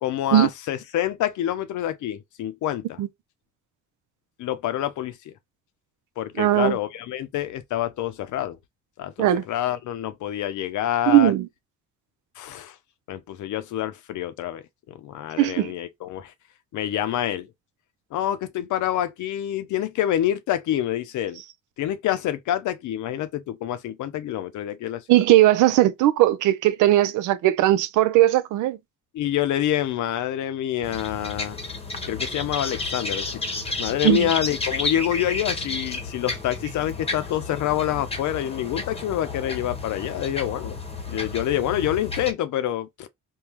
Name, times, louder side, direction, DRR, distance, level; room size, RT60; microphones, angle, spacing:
voice 1, 0.0-3.0 4.4-5.3 6.2-8.6 9.0-11.3 12.4-12.8 13.1-16.3 16.7-17.5 18.1-21.4 21.8-25.2 29.1-31.6 32.1-33.4 33.8-40.8 41.1-43.1, left 12 dB, 75° left, 0.6 m, -27 dB
voice 2, 6.4-6.8 9.2-9.4 11.1-11.5 15.4-15.7 25.1-28.8 34.0-34.3, right 14 dB, 85° right, 0.5 m, -18 dB
sound 1, 30.8-42.3, left 3 dB, 20° left, 0.9 m, -32 dB
3.7 x 2.3 x 2.9 m
cardioid pair, 90°, 30 cm